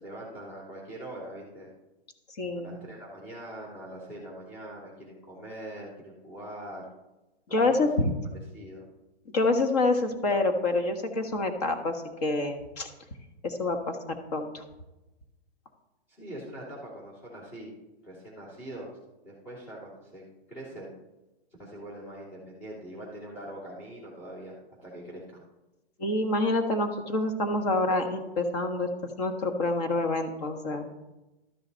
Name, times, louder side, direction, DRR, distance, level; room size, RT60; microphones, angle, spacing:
voice 1, 0.0-1.7 2.5-6.9 7.5-7.7 8.5-8.8 16.1-17.7 18.0-19.0 19.2-20.2 20.5-20.9 21.6-24.6 24.8-25.4, right 1 dB, 20° left, -7 dB, 2.8 m, -42 dB
voice 2, 2.4-2.8 7.5-8.1 9.3-12.9 13.4-14.0 14.3-14.6 26.0-28.9 29.2-30.8, left 2 dB, 40° left, 5 dB, 1.6 m, -27 dB
12.5 x 9.9 x 4.0 m, 1.0 s
hypercardioid pair, 170°, 32 cm